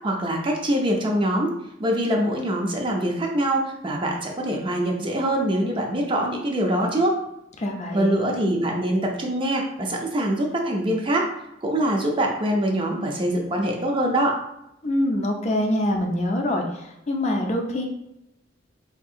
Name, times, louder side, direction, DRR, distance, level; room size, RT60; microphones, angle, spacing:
voice 1, 0.0-1.5 1.8-7.1 7.9-11.3 11.6-14.4, right 1 dB, 25° right, 1 dB, 0.4 m, -24 dB
voice 2, 7.6-8.2 14.8-17.9, left 1 dB, 35° left, 2 dB, 0.4 m, -25 dB
3.5 x 2.7 x 2.4 m, 0.85 s
head